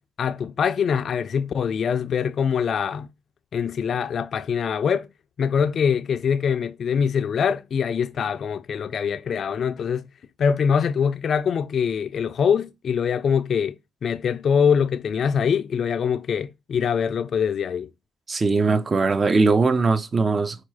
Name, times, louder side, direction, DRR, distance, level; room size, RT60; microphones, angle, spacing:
voice 1, 0.2-3.1 3.5-5.1 5.4-10.1 10.4-13.7 14.0-17.9, left 7 dB, 55° left, 0.3 m, -23 dB
voice 2, 18.3-20.6, right 4 dB, 35° right, 0.5 m, -20 dB
4.4 x 2.3 x 4.7 m
cardioid pair, 90°, 0 cm